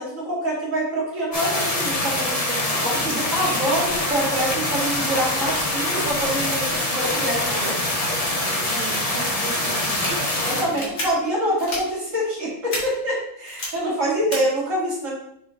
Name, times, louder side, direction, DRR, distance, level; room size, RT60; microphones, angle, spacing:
voice 1, 0.0-2.4 2.8-7.8 10.4-15.2, right 1 dB, 55° right, -6 dB, 2.5 m, -25 dB
sound 1, 1.3-10.6, left 1 dB, 25° left, 1.1 m, -24 dB
voice 2, 2.5-3.2 3.6-3.9 8.5-10.9, right 4 dB, 90° right, 0 dB, 1.8 m, -37 dB
sound 2, 9.8-10.1 10.7-11.0 11.6-11.8 12.7-12.8 13.5-13.7 14.3-14.4, left 1 dB, 45° left, 1.9 m, -29 dB
6.2 x 5.8 x 2.6 m, 0.72 s
omnidirectional pair, 1.6 m